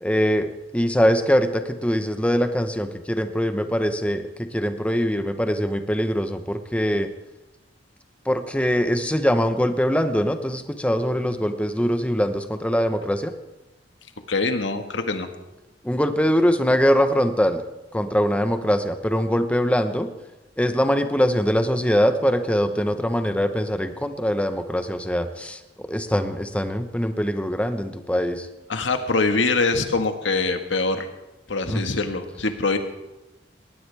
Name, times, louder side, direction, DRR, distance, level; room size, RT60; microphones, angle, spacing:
voice 1, 0.0-7.1 8.2-13.3 15.8-17.6 17.9-20.1 20.6-28.5 31.7-31.8, equal, 5° left, 8 dB, 1.0 m, -22 dB
voice 2, 14.3-15.3 28.7-31.1 31.5-32.8, left 3 dB, 90° left, 6 dB, 1.6 m, -23 dB
20.5 x 18.5 x 3.5 m, 1.0 s
head